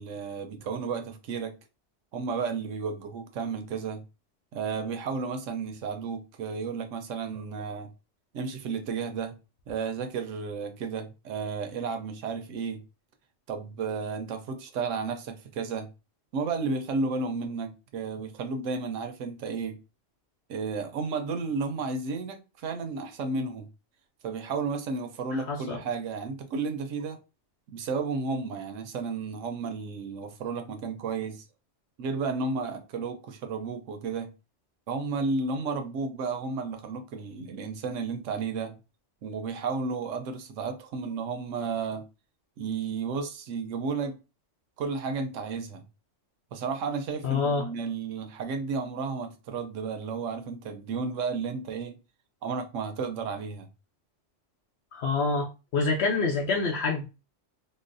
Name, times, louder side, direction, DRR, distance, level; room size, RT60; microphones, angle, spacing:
voice 1, 0.0-1.5 2.1-4.0 4.5-7.9 8.3-9.3 9.7-12.8 13.5-15.9 16.3-19.8 20.5-23.7 24.2-27.2 27.7-31.4 32.0-34.3 34.9-38.8 39.2-42.0 42.6-44.2 44.8-45.9 46.5-52.0 52.4-53.7, right 4 dB, 90° right, 1.0 m, -32 dB
voice 2, 25.3-25.8 47.2-47.6 54.9-57.1, left 4 dB, 65° left, 0.8 m, -27 dB
3.9 x 2.0 x 2.5 m
omnidirectional pair, 1.3 m